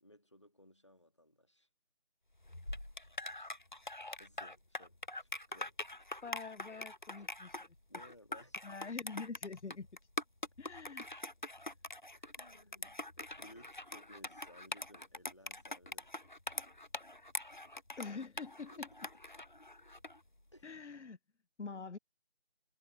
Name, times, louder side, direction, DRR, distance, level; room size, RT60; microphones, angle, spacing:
voice 1, 0.0-1.7 4.2-6.1 7.9-8.7 12.1-16.1 18.7-18.8 20.5-20.6 21.6-21.8, left 1 dB, 25° left, 1.7 m, -61 dB
sound 1, 2.4-20.2, left 1 dB, 45° left, 1.2 m, -44 dB
voice 2, 6.2-7.6 8.6-9.9 10.6-11.1 18.0-18.9 20.6-21.2 21.6-22.0, left 4 dB, 85° left, 0.7 m, -45 dB
figure-of-eight pair, 170°, 34 cm